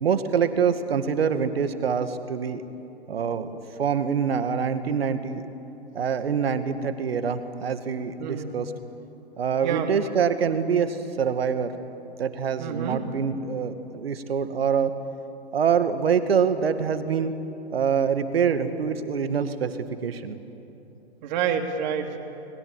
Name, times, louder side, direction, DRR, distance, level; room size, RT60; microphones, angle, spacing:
voice 1, 0.0-2.6 3.1-3.5 3.8-5.4 5.9-8.7 9.4-11.7 12.2-14.9 15.5-17.3 17.7-19.7 20.0-20.4, right 6 dB, 65° right, 9 dB, 2.2 m, -25 dB
voice 2, 8.2-8.6 9.6-9.9 12.6-13.1 21.2-22.2, right 8 dB, 45° right, 4 dB, 3.4 m, -28 dB
30.0 x 21.5 x 9.1 m, 2.9 s
figure-of-eight pair, 120°, 32 cm